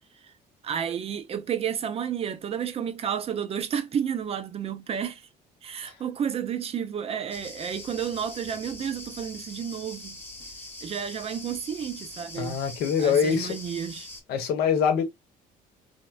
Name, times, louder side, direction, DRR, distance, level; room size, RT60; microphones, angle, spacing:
voice 1, 0.6-5.3 5.6-10.2 10.8-12.6 13.0-14.1, right 8 dB, 35° right, 0.4 m, -31 dB
sound 1, 7.3-14.2, left 2 dB, 10° left, 0.9 m, -43 dB
voice 2, 12.4-13.5 14.3-15.0, left 7 dB, 80° left, 0.9 m, -24 dB
3.3 x 2.1 x 2.2 m
cardioid pair, 110°, 17 cm